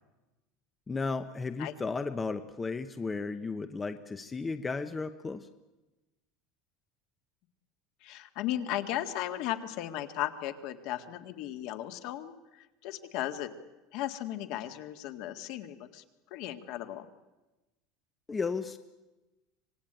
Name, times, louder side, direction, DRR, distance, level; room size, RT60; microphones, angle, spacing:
voice 1, 0.9-5.5 18.3-18.8, left 4 dB, 15° left, 9 dB, 0.8 m, -34 dB
voice 2, 8.0-13.5 13.9-16.0 16.3-17.1, left 12 dB, 55° left, 7 dB, 1.9 m, -36 dB
26.0 x 19.0 x 9.0 m, 1.1 s
cardioid pair, 155°, 0 cm